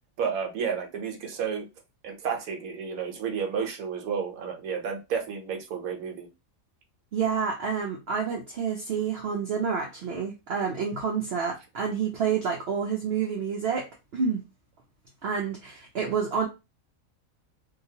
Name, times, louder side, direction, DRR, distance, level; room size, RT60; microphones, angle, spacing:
voice 1, 0.2-1.7 2.0-6.3, right 6 dB, 90° right, 1.2 m, -31 dB
voice 2, 7.1-14.4 15.2-16.5, right 6 dB, 60° right, 0.7 m, -29 dB
2.8 x 2.3 x 2.7 m
omnidirectional pair, 1.5 m